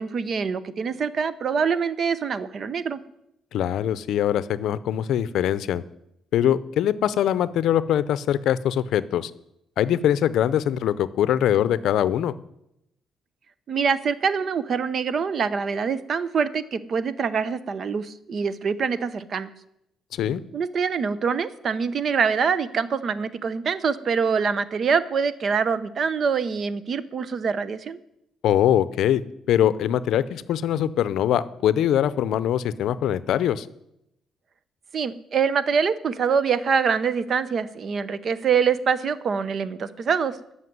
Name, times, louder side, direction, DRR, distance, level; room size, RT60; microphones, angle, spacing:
voice 1, 0.0-3.0 13.7-19.5 20.5-28.0 34.9-40.4, right 6 dB, 45° right, 15 dB, 0.8 m, -25 dB
voice 2, 3.5-5.8 6.3-9.3 9.8-12.3 20.1-20.4 28.4-29.2 29.5-33.7, left 10 dB, 75° left, 17 dB, 0.6 m, -22 dB
13.5 x 5.8 x 9.4 m, 0.82 s
cardioid pair, 130°, 0 cm